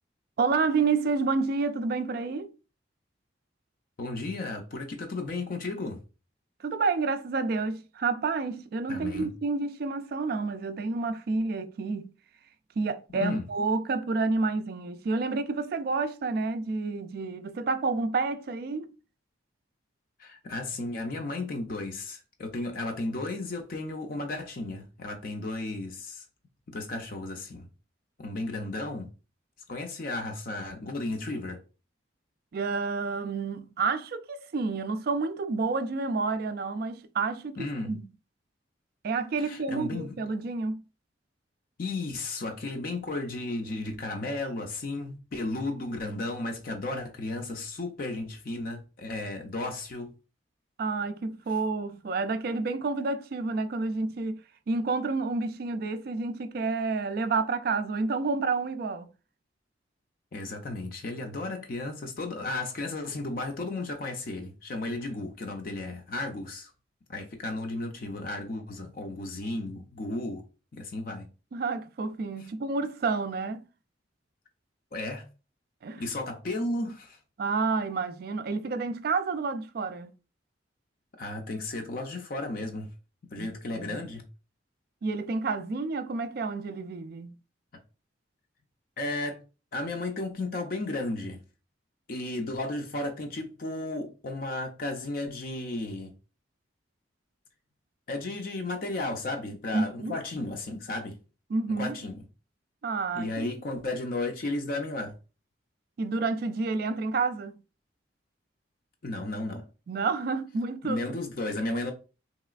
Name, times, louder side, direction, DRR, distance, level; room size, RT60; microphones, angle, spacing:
voice 1, 0.4-2.5 6.6-12.1 12.8-18.9 32.5-38.1 39.0-40.8 50.8-54.4 54.7-59.1 71.5-73.6 75.8-76.0 77.4-80.1 83.4-84.1 85.0-87.4 99.7-100.2 101.5-102.0 102.8-103.5 106.0-107.5 109.9-111.1, right 4 dB, 50° right, 0.3 m, -29 dB
voice 2, 4.0-6.0 8.9-9.3 13.2-13.4 20.2-26.2 26.7-27.7 28.2-29.1 29.7-31.6 37.6-37.9 39.4-40.1 41.8-50.1 60.3-66.7 67.1-70.4 70.7-71.3 74.9-75.3 76.0-77.2 81.2-82.9 83.3-84.3 89.0-89.4 89.7-91.4 92.1-96.1 98.1-101.2 101.7-102.2 103.1-105.1 109.0-109.6 110.8-111.9, left 2 dB, 45° left, 0.5 m, -34 dB
3.2 x 2.9 x 2.4 m
head